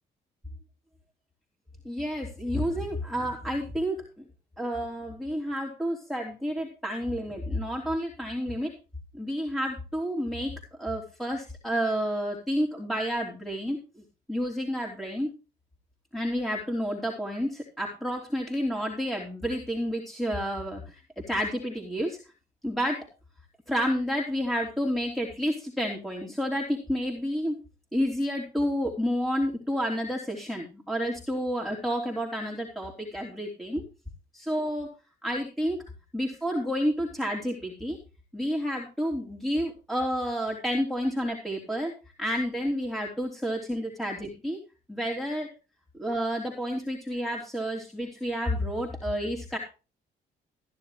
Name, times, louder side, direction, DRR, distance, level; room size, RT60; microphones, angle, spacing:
voice 1, 1.8-4.0 4.6-8.7 9.1-10.5 10.8-13.8 14.3-15.3 16.1-22.2 22.6-23.0 23.7-27.6 27.9-33.8 34.3-34.9 35.2-35.8 36.1-38.0 38.3-41.9 42.2-44.6 44.9-45.5 46.0-49.6, equal, ahead, 0 dB, 3.2 m, -30 dB
15.0 x 10.0 x 3.3 m, 0.32 s
cardioid pair, 90°, 20 cm